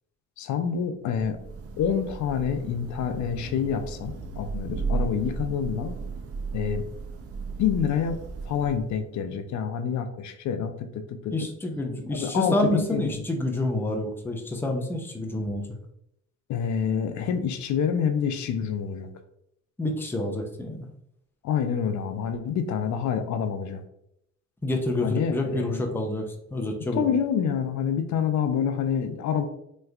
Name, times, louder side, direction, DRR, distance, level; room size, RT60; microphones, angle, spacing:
voice 1, 0.4-1.4 1.8-6.0 6.5-6.8 7.6-8.2 8.4-11.3 12.1-13.1 16.5-19.1 21.4-23.8 25.0-25.8 26.9-29.5, left 7 dB, 70° left, 8 dB, 0.5 m, -27 dB
Thunder / Rain, 1.1-9.1, right 4 dB, 50° right, 0.5 m, -35 dB
voice 2, 11.3-15.6 19.8-20.9 24.6-26.2 26.5-27.0, left 1 dB, 5° left, 3 dB, 0.5 m, -28 dB
3.3 x 3.1 x 2.3 m, 0.76 s
cardioid pair, 90°, 30 cm